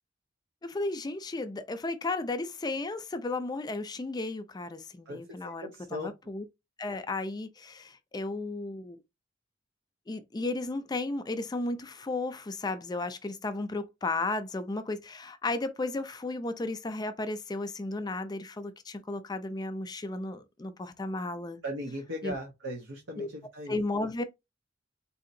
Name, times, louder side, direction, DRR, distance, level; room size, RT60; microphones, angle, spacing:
voice 1, 0.6-6.4 6.8-9.0 10.1-21.6 22.2-22.3 23.2-23.3 23.7-24.2, left 2 dB, 20° left, 0.4 m, -34 dB
voice 2, 5.6-6.1 21.6-23.8, equal, 80° right, 0.8 m, -37 dB
4.1 x 2.8 x 2.6 m
head